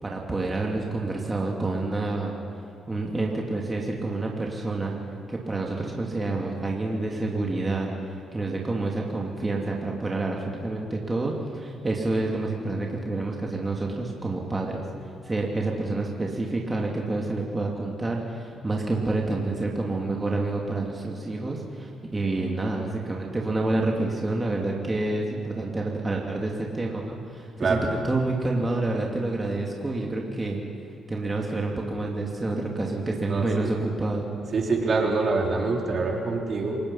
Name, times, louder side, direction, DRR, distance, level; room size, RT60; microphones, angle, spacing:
voice 1, 0.0-2.4 2.9-4.9 5.3-14.8 15.2-27.8 28.0-30.6 31.1-34.3, right 2 dB, 20° right, -1 dB, 2.6 m, -28 dB
voice 2, 33.3-33.7 34.5-36.8, right 3 dB, 45° right, 1 dB, 3.4 m, -25 dB
28.0 x 18.5 x 5.7 m, 2.5 s
cardioid pair, 90°, 0 cm